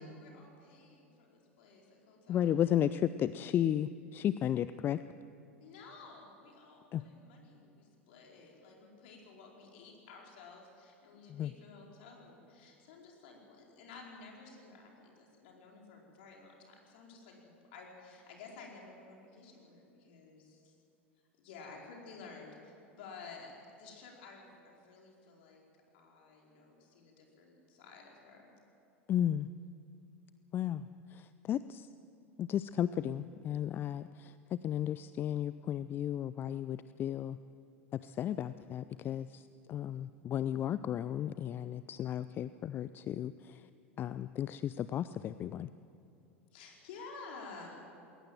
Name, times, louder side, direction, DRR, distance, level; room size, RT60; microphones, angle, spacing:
voice 1, 0.0-2.7 5.6-20.7 21.4-25.6 25.9-28.6 46.5-47.8, left 4 dB, 55° left, -1 dB, 4.7 m, -53 dB
voice 2, 2.3-5.0 6.9-7.0 11.3-11.5 29.1-29.5 30.5-31.9 32.4-37.4 38.0-39.4 39.7-43.6 44.0-45.7, left 10 dB, 30° left, 15 dB, 0.4 m, -34 dB
21.0 x 18.5 x 7.6 m, 2.7 s
figure-of-eight pair, 80°, 7 cm